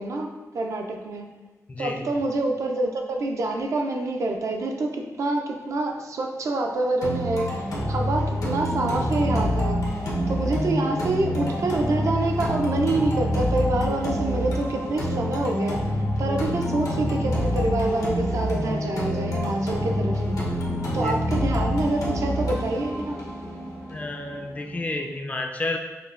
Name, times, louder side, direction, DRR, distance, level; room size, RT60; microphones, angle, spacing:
voice 1, 0.0-1.3 1.8-10.0 10.3-20.4 20.9-23.2, right 2 dB, 60° right, 3 dB, 0.4 m, -27 dB
voice 2, 1.7-2.0 20.9-21.2 23.9-25.8, left 2 dB, 25° left, 4 dB, 0.3 m, -31 dB
sound 1, 7.0-25.0, equal, 85° left, 0.8 m, -27 dB
5.2 x 2.1 x 2.4 m, 1.1 s
wide cardioid pair, 115°, 6 cm